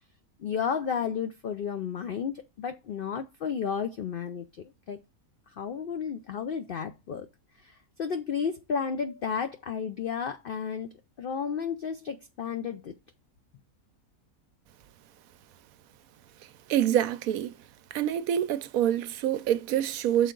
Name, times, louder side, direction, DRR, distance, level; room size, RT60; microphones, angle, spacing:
voice 1, 0.4-4.5 4.9-5.0 5.6-7.3 7.6-12.9, left 7 dB, 85° left, 0.4 m, -32 dB
voice 2, 16.7-17.5 17.9-20.3, right 11 dB, 75° right, 1.0 m, -26 dB
6.4 x 4.6 x 3.7 m
omnidirectional pair, 1.6 m